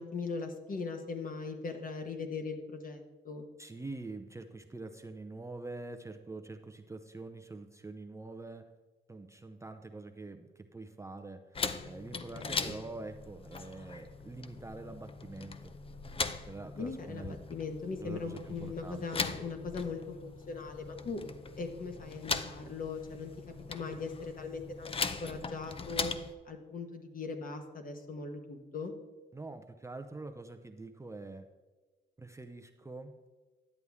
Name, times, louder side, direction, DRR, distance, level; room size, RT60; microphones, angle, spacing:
voice 1, 0.0-3.5 12.1-12.7 16.7-21.2 21.6-23.3 23.7-24.9 25.2-26.1 26.4-28.9, left 4 dB, 45° left, 5 dB, 1.3 m, -40 dB
voice 2, 3.6-8.6 9.1-11.6 11.8-15.7 16.5-17.4 18.0-19.2 29.3-31.5 32.2-33.3, right 3 dB, 15° right, 6 dB, 0.6 m, -45 dB
sound 1, 11.5-26.3, left 4 dB, 30° left, 0.6 m, -40 dB
11.0 x 8.0 x 3.6 m, 1.2 s
cardioid pair, 90°, 20 cm